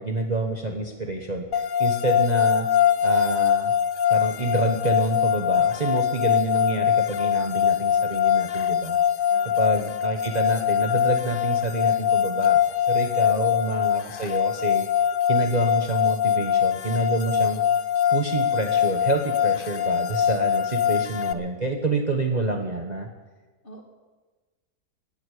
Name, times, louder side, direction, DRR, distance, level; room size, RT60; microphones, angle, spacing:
voice 1, 0.0-2.7 3.0-3.7 4.1-9.0 9.6-12.6 12.9-14.9 15.3-17.6 18.1-23.1, right 2 dB, 30° right, 3 dB, 1.1 m, -27 dB
sound 1, 1.5-21.3, left 9 dB, 75° left, 0.4 m, -23 dB
voice 2, 9.3-9.6 13.1-13.4 23.6-23.8, equal, 35° left, 2 dB, 2.2 m, -44 dB
18.5 x 8.0 x 8.3 m, 1.3 s
omnidirectional pair, 1.7 m